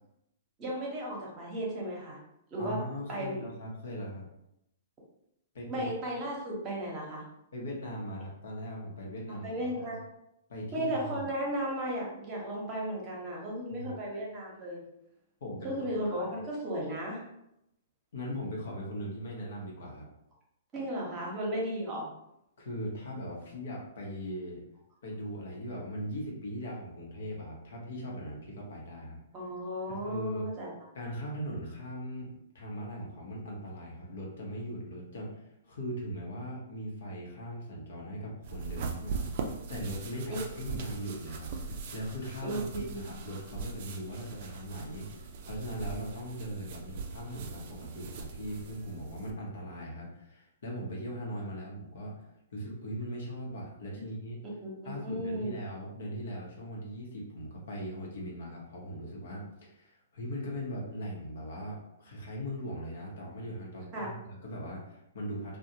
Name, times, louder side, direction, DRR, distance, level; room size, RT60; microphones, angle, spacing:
voice 1, 0.6-2.2 2.5-2.8 3.1-3.4 5.7-7.2 9.4-10.0 10.7-14.8 15.6-17.2 20.7-22.1 29.3-30.7 40.3-40.4 42.4-43.0 53.9-54.1 54.6-55.6 63.9-64.1, right 1 dB, 30° right, -3 dB, 0.9 m, -35 dB
voice 2, 2.6-4.3 5.5-5.9 7.5-10.0 10.5-11.3 13.7-14.0 15.4-15.7 16.1-16.3 18.1-20.1 22.6-24.6 25.0-29.2 29.9-30.5 30.9-52.2 52.5-54.4 54.8-65.6, equal, 65° left, -2 dB, 0.8 m, -40 dB
sound 1, 38.4-49.3, right 4 dB, 50° right, 0.4 m, -40 dB
2.4 x 2.1 x 2.8 m, 0.82 s
hypercardioid pair, 120°, 0 cm